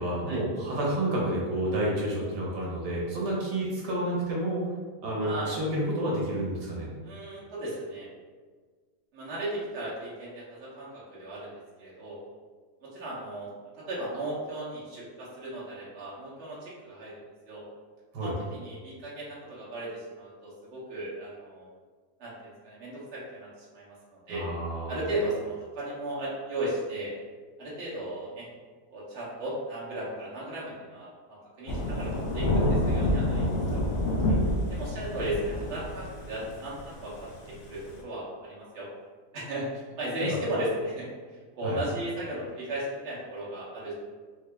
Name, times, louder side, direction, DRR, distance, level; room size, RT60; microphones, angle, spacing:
voice 1, 0.0-4.6 5.0-6.9 18.1-18.3 24.3-25.0 40.3-40.4 41.6-41.8, right 1 dB, 90° right, -4 dB, 1.6 m, -30 dB
voice 2, 5.2-5.5 7.0-8.1 9.1-11.5 11.8-12.2 12.8-13.5 13.8-17.2 17.5-17.6 18.2-21.6 22.2-24.4 24.9-27.1 27.6-28.5 28.9-33.8 34.3-34.4 34.7-38.9 39.3-39.7 40.0-41.1 41.6-43.9, right 1 dB, 45° right, -8 dB, 1.2 m, -36 dB
Thunder / Rain, 31.7-38.0, left 1 dB, 75° left, 0.6 m, -28 dB
3.8 x 2.0 x 3.3 m, 1.5 s
omnidirectional pair, 1.7 m